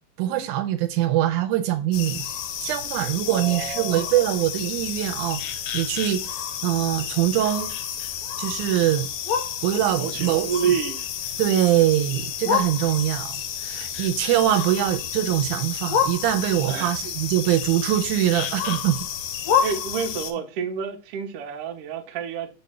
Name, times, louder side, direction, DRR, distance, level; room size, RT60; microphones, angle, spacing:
voice 1, 0.2-2.3 2.6-5.4 5.7-6.2 6.6-7.7 8.4-9.1 9.6-10.7 11.4-13.4 13.6-19.0, right 13 dB, 85° right, 2.1 m, -23 dB
sound 1, 1.9-20.3, left 8 dB, 75° left, 1.7 m, -29 dB
voice 2, 3.3-4.1 9.9-11.0 16.6-16.9 19.6-22.5, right 7 dB, 65° right, 1.6 m, -29 dB
4.3 x 4.2 x 5.4 m
omnidirectional pair, 3.5 m